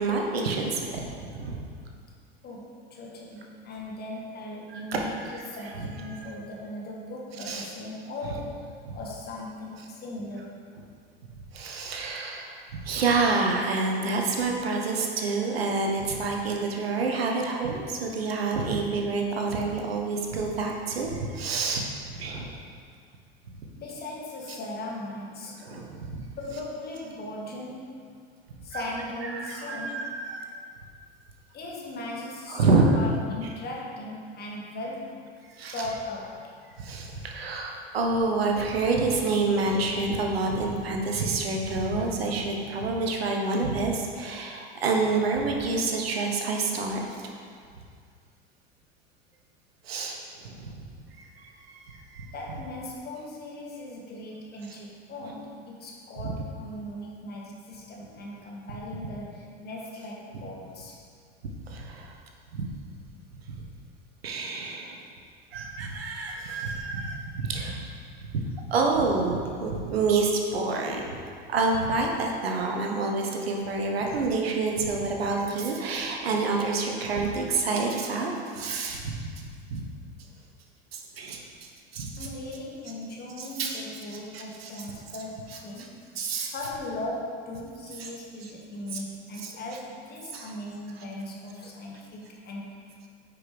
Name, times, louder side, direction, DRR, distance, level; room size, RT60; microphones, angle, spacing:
voice 1, 0.0-1.6 4.7-5.0 5.8-6.3 7.5-7.7 8.9-9.0 11.5-12.6 12.8-22.6 25.6-26.2 28.7-28.8 29.2-30.5 32.5-33.0 35.5-35.7 36.8-47.0 49.8-50.7 51.2-52.3 56.2-56.3 61.7-62.2 62.5-62.7 63.5-63.6 64.2-65.0 65.5-67.8 68.3-71.0 71.5-79.2 79.7-79.8 80.9-81.4 81.9-82.1 83.4-83.8 84.3-84.7 86.2-86.5 88.0-88.1 88.9-89.0 89.4-89.5 90.3-90.5, right 3 dB, 75° right, 1 dB, 1.0 m, -28 dB
voice 2, 2.4-8.7 8.9-10.5 23.7-25.7 26.4-28.1 28.6-30.1 31.5-35.3 35.7-36.6 52.3-61.0 82.2-86.0 86.5-92.8, left 1 dB, 30° left, -2 dB, 1.6 m, -38 dB
9.5 x 5.2 x 3.3 m, 2.2 s
figure-of-eight pair, 80°, 31 cm